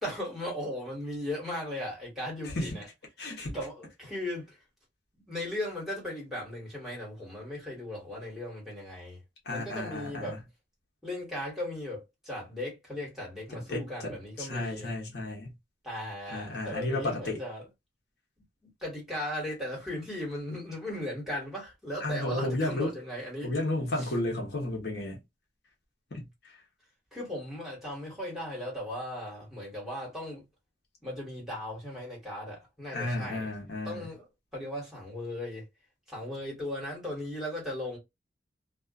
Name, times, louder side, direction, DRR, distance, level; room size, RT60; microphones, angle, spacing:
voice 1, 0.0-2.9 3.5-4.6 5.1-9.2 9.5-10.4 11.0-14.9 15.8-17.7 18.6-23.5 24.0-24.1 27.1-30.4 31.0-33.5 33.8-35.7 36.1-38.0, left 1 dB, ahead, 1.5 m, -37 dB
voice 2, 3.2-3.6 9.5-10.4 13.5-15.5 16.3-17.4 22.0-22.9 23.4-25.2 26.1-26.5 32.9-34.1, left 2 dB, 60° left, 1.0 m, -33 dB
2.4 x 2.4 x 2.3 m
head